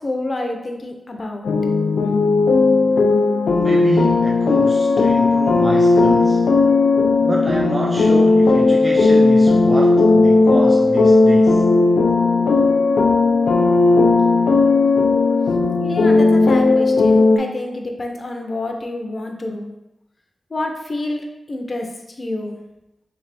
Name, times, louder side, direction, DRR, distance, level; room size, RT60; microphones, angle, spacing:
voice 1, 0.0-1.5 15.8-19.7 20.5-21.2 21.5-21.9 22.2-22.6, left 2 dB, 35° left, 3 dB, 0.6 m, -28 dB
sound 1, 1.4-17.4, left 3 dB, 90° left, 0.4 m, -15 dB
voice 2, 3.5-6.5 7.2-11.6, right 2 dB, 25° right, -1 dB, 0.3 m, -27 dB
3.4 x 3.3 x 4.1 m, 0.92 s
wide cardioid pair, 125°, 0 cm